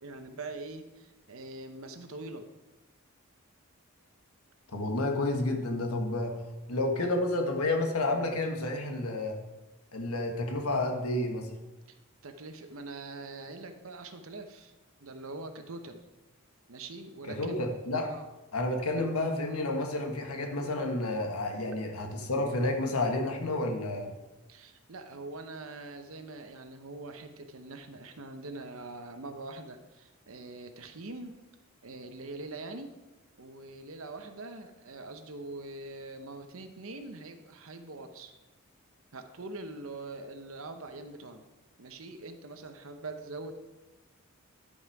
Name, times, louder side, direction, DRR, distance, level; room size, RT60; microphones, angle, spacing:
voice 1, 0.0-2.5 11.9-12.0 12.2-14.7 15.0-16.0 16.7-17.5 18.1-18.3 24.5-31.4 31.8-32.9 33.4-38.3 39.1-41.5 41.8-43.6, right 2 dB, 70° right, 7 dB, 0.9 m, -43 dB
voice 2, 4.7-6.4 6.7-9.4 9.9-11.5 17.2-18.1 18.5-24.1, left 2 dB, 85° left, 3 dB, 1.5 m, -30 dB
10.5 x 5.7 x 4.8 m, 1.1 s
head